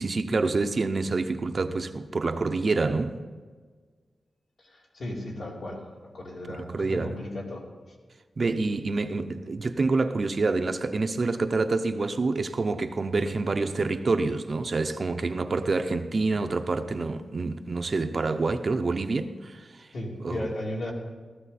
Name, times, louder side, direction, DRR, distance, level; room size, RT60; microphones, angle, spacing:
voice 1, 0.0-3.2 6.7-7.1 8.4-19.9 20.2-20.4, right 3 dB, 40° right, 0.6 m, -27 dB
voice 2, 4.6-5.9 6.1-8.0 19.9-20.9, left 1 dB, 65° left, 2.9 m, -36 dB
16.5 x 13.5 x 4.2 m
wide cardioid pair, 135°, 0 cm